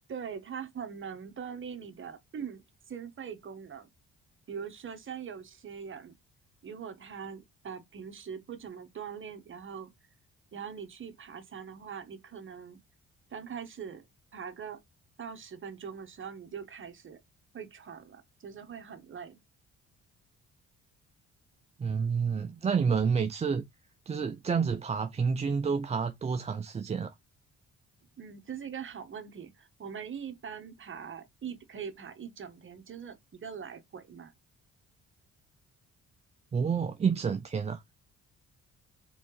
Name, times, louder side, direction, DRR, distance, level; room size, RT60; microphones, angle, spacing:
voice 1, 0.1-3.9 4.5-6.1 6.6-9.9 10.5-12.8 13.3-14.1 14.3-14.8 15.2-17.2 17.5-19.4 28.2-34.3, right 7 dB, 40° right, 1.0 m, -42 dB
voice 2, 21.8-23.7 24.1-27.1 36.5-37.8, right 6 dB, 25° right, 0.4 m, -29 dB
4.2 x 3.8 x 3.0 m
cardioid pair, 90°, 30 cm